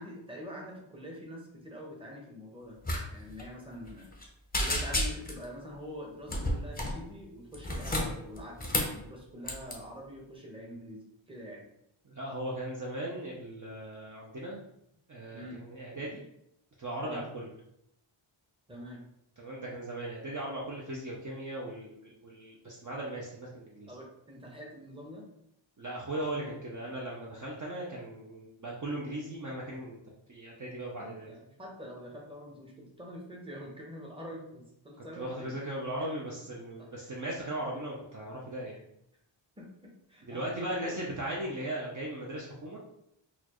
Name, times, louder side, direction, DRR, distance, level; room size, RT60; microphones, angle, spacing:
voice 1, 0.0-2.8 3.1-4.1 4.6-11.6 15.3-15.6 15.9-16.1 17.0-17.2 18.7-19.0 23.9-25.3 31.0-35.5 36.0-36.1 36.8-37.1 39.6-41.0, equal, 10° right, -2 dB, 0.9 m, -45 dB
sound 1, 2.8-3.0 3.3-3.4 3.9-4.2 4.5-5.4 6.3-7.0 7.5-9.0 9.4-9.7, left 1 dB, 20° left, 0.7 m, -31 dB
voice 2, 12.1-14.6 15.1-16.2 16.8-17.5 19.4-23.9 25.8-30.0 30.3-31.3 35.2-38.8 40.3-42.8, right 1 dB, 40° right, -4 dB, 0.6 m, -38 dB
4.2 x 2.4 x 2.9 m, 0.78 s
wide cardioid pair, 95°, 50 cm